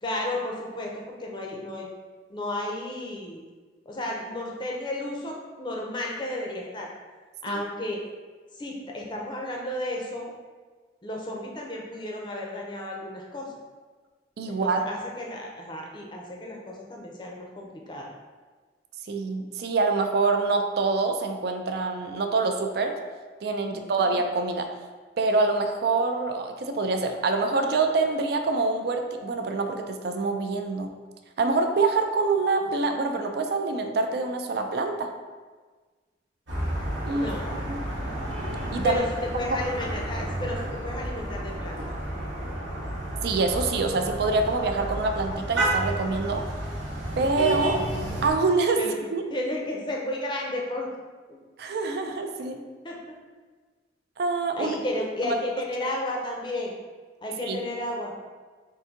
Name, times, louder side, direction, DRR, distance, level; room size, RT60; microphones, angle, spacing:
voice 1, 0.0-1.9 2.3-3.4 3.9-6.9 7.4-8.0 8.5-10.3 11.0-13.5 14.5-18.1 23.6-24.0 37.1-37.6 38.8-41.8 48.8-48.9 49.3-50.9 51.3-51.4 52.8-53.0 54.5-56.7 57.2-58.1, left 1 dB, 25° left, -1 dB, 0.5 m, -33 dB
voice 2, 14.4-14.8 19.1-23.0 23.4-24.7 25.2-30.9 31.4-35.1 37.1-37.3 37.7-37.8 38.7-39.0 43.2-46.4 47.2-47.8 48.2-48.8 49.1-49.2 51.6-52.6 54.2-54.8 55.2-55.3 57.4-57.6, right 3 dB, 60° right, 5 dB, 0.4 m, -25 dB
sound 1, 36.5-48.3, right 1 dB, 85° right, 1.0 m, -31 dB
3.9 x 2.6 x 3.6 m, 1.4 s
head